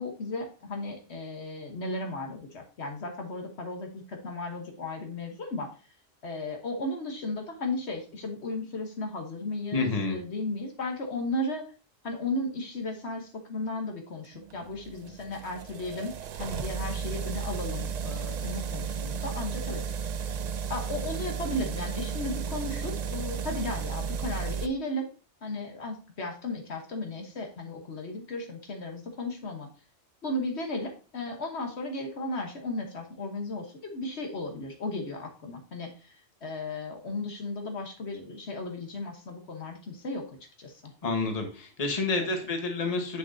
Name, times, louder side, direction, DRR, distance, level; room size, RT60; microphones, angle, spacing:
voice 1, 0.0-5.7 6.2-11.6 12.0-16.1 16.4-19.8 20.7-25.1 25.4-29.7 30.2-36.2 36.4-40.2 40.6-40.9 42.2-42.3, left 2 dB, 65° left, 2 dB, 1.4 m, -35 dB
voice 2, 9.7-10.2 41.0-43.2, left 3 dB, 35° left, 3 dB, 1.3 m, -29 dB
sound 1, 14.3-24.7, right 6 dB, 60° right, 0.4 m, -34 dB
7.7 x 6.6 x 2.6 m, 0.34 s
omnidirectional pair, 1.2 m